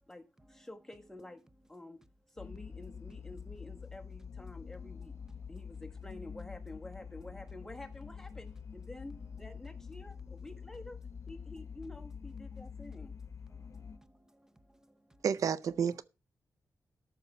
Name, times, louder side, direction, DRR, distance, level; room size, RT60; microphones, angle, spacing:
voice 1, 0.1-1.4 1.7-2.0 2.3-5.1 5.5-9.1 9.4-11.0 11.3-13.1, left 2 dB, 10° left, 1.3 m, -49 dB
sound 1, 2.4-14.0, left 6 dB, 55° left, 0.9 m, -46 dB
voice 2, 5.2-5.5 13.5-15.2, equal, 10° right, 0.8 m, -64 dB
voice 3, 15.2-16.0, right 7 dB, 75° right, 0.5 m, -30 dB
13.0 x 6.0 x 5.4 m
wide cardioid pair, 150°, 6 cm